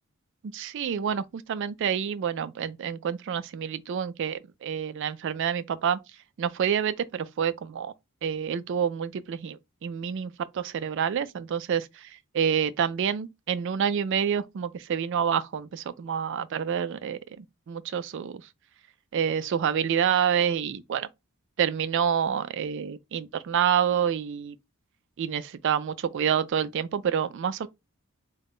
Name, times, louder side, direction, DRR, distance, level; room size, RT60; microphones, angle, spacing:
voice 1, 0.4-6.0 6.4-7.9 8.2-18.4 19.1-21.1 21.6-24.6 25.2-27.7, right 8 dB, 55° right, 0.3 m, -28 dB
3.7 x 2.2 x 3.6 m
head